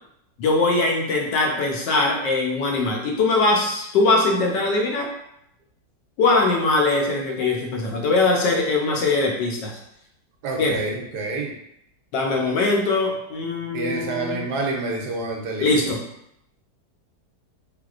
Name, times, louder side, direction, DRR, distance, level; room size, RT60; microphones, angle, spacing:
voice 1, 0.4-5.1 6.2-9.7 10.6-10.8 12.1-14.4 15.6-16.0, left 3 dB, 90° left, 0 dB, 1.4 m, -21 dB
voice 2, 10.4-11.5 13.7-15.7, right 3 dB, 75° right, 0 dB, 1.2 m, -28 dB
3.4 x 3.2 x 2.4 m, 0.76 s
omnidirectional pair, 1.8 m